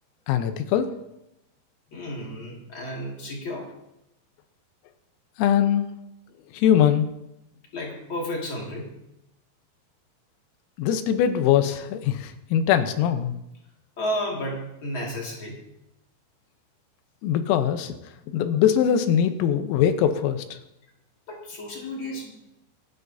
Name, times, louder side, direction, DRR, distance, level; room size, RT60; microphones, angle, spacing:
voice 1, 0.3-0.9 5.4-5.9 6.5-7.1 10.8-13.4 17.2-18.0 18.3-20.5, left 9 dB, 85° left, 8 dB, 3.5 m, -21 dB
voice 2, 1.9-3.7 7.7-8.9 14.0-15.6 21.3-22.4, equal, 50° left, -2 dB, 1.5 m, -32 dB
26.0 x 10.0 x 2.7 m, 0.87 s
omnidirectional pair, 5.9 m